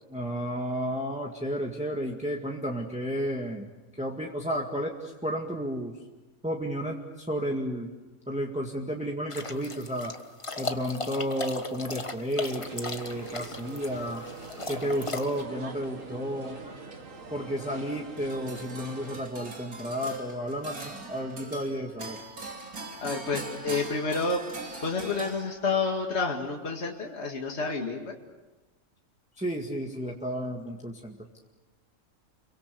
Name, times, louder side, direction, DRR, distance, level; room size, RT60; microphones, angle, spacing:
voice 1, 0.1-3.7 4.0-5.9 6.4-7.9 8.3-10.2 10.6-14.2 14.7-16.6 17.3-22.2 29.4-31.2, equal, 5° right, 0 dB, 1.9 m, -32 dB
sound 1, 9.3-15.4, left 3 dB, 25° left, 1.3 m, -37 dB
sound 2, 12.4-19.2, right 3 dB, 65° right, 2.6 m, -43 dB
sound 3, 18.2-25.9, right 3 dB, 80° right, 3.5 m, -41 dB
voice 2, 23.0-24.4 24.8-28.2, left 4 dB, 50° left, 0 dB, 2.4 m, -29 dB
30.0 x 23.5 x 7.0 m, 1.1 s
omnidirectional pair, 1.5 m